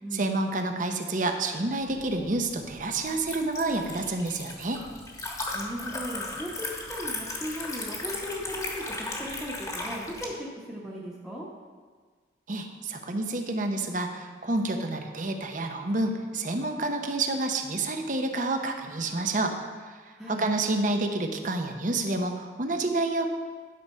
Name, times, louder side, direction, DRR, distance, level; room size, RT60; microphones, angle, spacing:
voice 1, 0.1-4.8 12.5-19.5 19.9-20.0 20.3-23.3, right 2 dB, 45° right, 5 dB, 0.8 m, -29 dB
Liquid, 1.9-10.3, left 2 dB, 20° left, 1.2 m, -37 dB
voice 2, 5.5-11.5 20.2-20.4, equal, 5° right, -6 dB, 1.0 m, -37 dB
11.0 x 4.9 x 5.5 m, 1.5 s
head